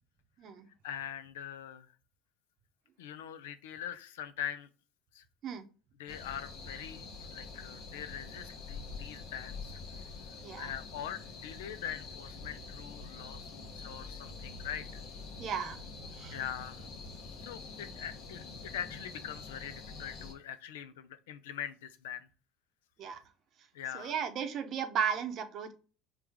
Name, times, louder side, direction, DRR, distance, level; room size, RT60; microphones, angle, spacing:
voice 1, 0.8-1.9 3.0-4.7 5.1-5.2 6.0-10.1 10.6-15.0 16.3-16.8 17.4-22.3 23.7-24.1, left 10 dB, 85° left, 12 dB, 0.4 m, -43 dB
sound 1, 6.1-20.3, left 4 dB, 65° left, 1.0 m, -46 dB
voice 2, 15.4-15.8 16.1-16.4 23.0-23.2 23.9-25.7, right 7 dB, 55° right, 8 dB, 0.7 m, -35 dB
4.6 x 2.2 x 3.5 m, 0.36 s
hypercardioid pair, 80°, 0 cm